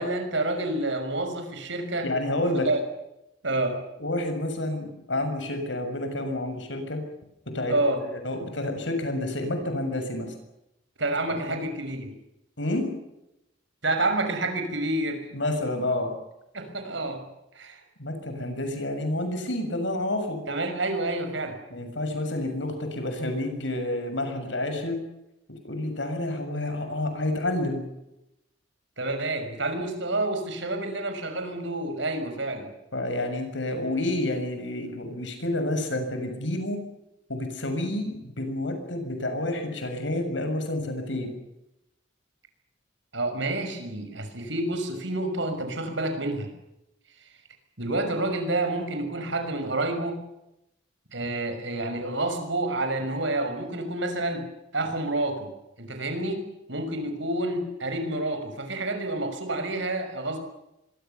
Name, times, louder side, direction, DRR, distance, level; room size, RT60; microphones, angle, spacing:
voice 1, 0.0-2.1 2.6-2.8 3.4-3.8 7.7-8.0 11.0-12.1 13.8-15.3 16.5-17.2 17.5-17.8 20.5-21.6 29.0-32.7 43.1-46.5 47.8-50.2 51.1-55.5 55.8-60.4, right 2 dB, 75° right, 6 dB, 6.1 m, -29 dB
voice 2, 2.0-2.7 4.0-7.0 7.5-7.7 8.1-10.3 11.5-11.6 12.6-12.9 15.3-16.1 18.0-20.4 21.7-25.0 25.6-27.8 32.9-36.8 37.3-41.3, left 1 dB, 75° left, 7 dB, 7.0 m, -29 dB
25.5 x 23.0 x 7.1 m, 0.87 s
head